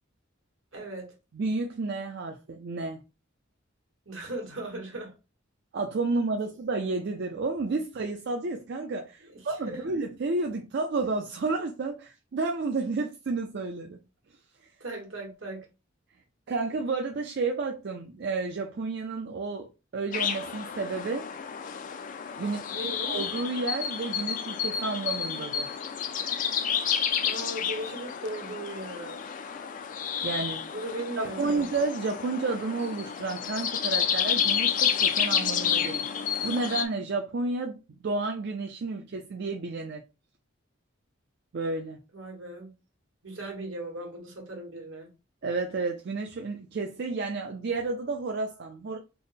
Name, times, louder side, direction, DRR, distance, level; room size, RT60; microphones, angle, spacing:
voice 1, 0.7-1.2 4.0-5.1 9.2-9.8 14.8-15.6 22.4-23.2 27.2-29.3 30.7-31.7 42.1-42.7 43.2-45.1, right 1 dB, 80° right, 1.4 m, -38 dB
voice 2, 1.3-3.0 5.7-14.0 14.6-14.7 16.5-21.3 22.4-25.7 30.2-30.7 31.2-36.0 36.4-40.0 41.5-42.0 45.4-49.0, right 3 dB, 55° right, 0.4 m, -31 dB
sound 1, 20.1-36.9, left 8 dB, 40° left, 0.4 m, -30 dB
3.4 x 2.1 x 4.0 m
head